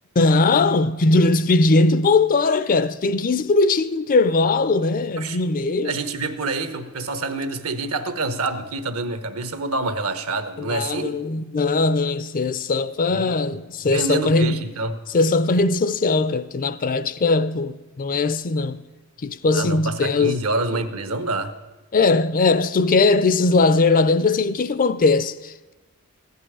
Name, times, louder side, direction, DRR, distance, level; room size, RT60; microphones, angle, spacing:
voice 1, 0.2-6.0 10.6-14.6 15.1-18.8 19.2-20.4 21.9-25.7, left 3 dB, 40° left, 0.4 m, -20 dB
voice 2, 5.8-11.1 13.1-13.3 13.8-15.0 19.5-21.5, right 3 dB, 70° right, 1.0 m, -27 dB
15.5 x 5.5 x 9.8 m
head